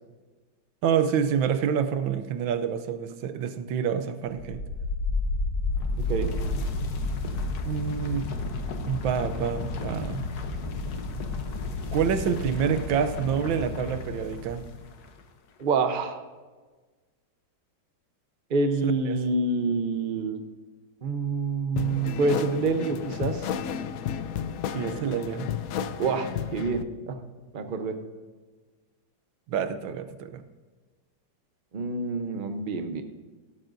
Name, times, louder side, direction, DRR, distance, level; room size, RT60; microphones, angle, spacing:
voice 1, 0.8-4.6 7.6-8.3 8.8-10.3 11.9-14.6 18.8-19.2 24.7-25.5 29.5-30.4, right 7 dB, 90° right, 10 dB, 1.5 m, -27 dB
sound 1, 4.3-15.1, left 3 dB, 60° left, 1.3 m, -31 dB
voice 2, 15.6-16.2 18.5-20.4 21.0-23.5 26.0-27.2 27.5-28.0 31.7-33.0, right 3 dB, 40° right, 7 dB, 0.7 m, -27 dB
sound 2, 21.8-26.8, left 8 dB, 80° left, 0.7 m, -32 dB
17.5 x 12.0 x 2.6 m, 1.3 s
omnidirectional pair, 2.0 m